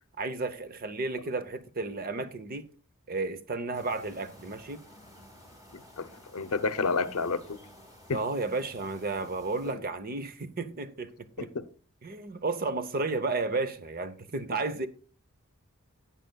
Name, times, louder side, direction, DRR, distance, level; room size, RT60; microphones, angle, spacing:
voice 1, 0.2-2.7 3.1-4.8 8.1-11.5 12.0-14.9, right 3 dB, 40° right, 0.8 m, -33 dB
sound 1, 3.7-9.7, left 1 dB, 15° right, 2.1 m, -53 dB
voice 2, 5.7-7.6 8.1-8.2 9.7-9.8 11.5-11.6, left 4 dB, 75° left, 0.7 m, -30 dB
17.0 x 9.0 x 2.3 m
head